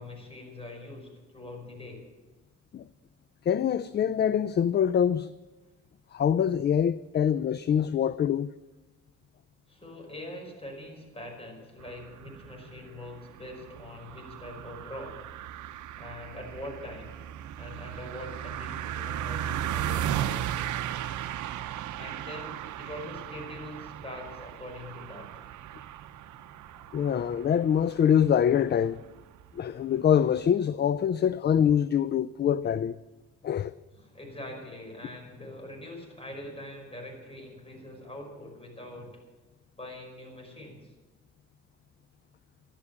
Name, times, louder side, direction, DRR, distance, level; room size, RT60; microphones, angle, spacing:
voice 1, 0.0-2.0 9.7-15.3 16.0-17.2 17.6-20.5 22.0-25.3 34.0-39.2 39.8-40.9, left 1 dB, 20° left, 5.4 m, -43 dB
voice 2, 3.5-5.3 6.1-8.5 26.9-29.0 29.6-33.0 33.4-33.8, left 8 dB, 35° left, 0.4 m, -24 dB
sound 1, 11.8-30.4, right 11 dB, 75° right, 0.7 m, -37 dB
13.0 x 12.0 x 6.9 m
cardioid pair, 90°, 30 cm